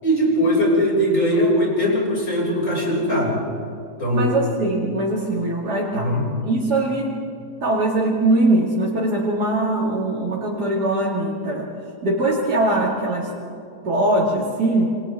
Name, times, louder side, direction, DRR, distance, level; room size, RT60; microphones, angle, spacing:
voice 1, 0.0-3.4 4.0-4.3 5.9-6.3, equal, 55° left, -3 dB, 7.1 m, -20 dB
voice 2, 4.1-6.1 6.4-7.2 7.6-11.7 12.0-13.3 13.8-14.9, right 2 dB, 90° right, -5 dB, 3.1 m, -21 dB
29.0 x 27.0 x 3.8 m, 2.6 s
omnidirectional pair, 1.7 m